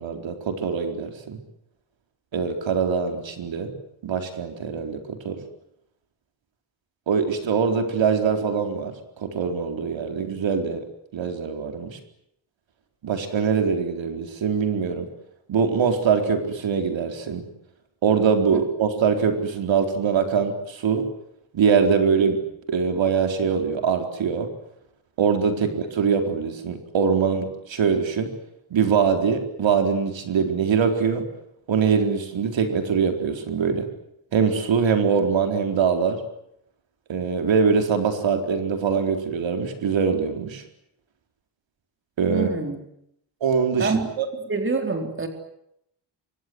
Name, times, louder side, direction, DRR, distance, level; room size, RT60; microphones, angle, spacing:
voice 1, 0.0-1.4 2.3-3.8 4.0-5.4 7.1-10.8 11.1-12.0 13.0-15.1 15.5-17.4 18.0-21.1 21.5-22.4 22.7-24.5 25.2-28.3 28.7-31.2 31.7-33.9 34.3-36.2 37.1-40.6 42.2-42.5 43.4-44.3, right 6 dB, 80° right, 5 dB, 4.3 m, -23 dB
voice 2, 42.3-42.8 43.8-44.1 44.5-45.3, right 4 dB, 25° right, 4 dB, 4.1 m, -25 dB
27.5 x 24.5 x 7.9 m, 0.77 s
wide cardioid pair, 165°, 45 cm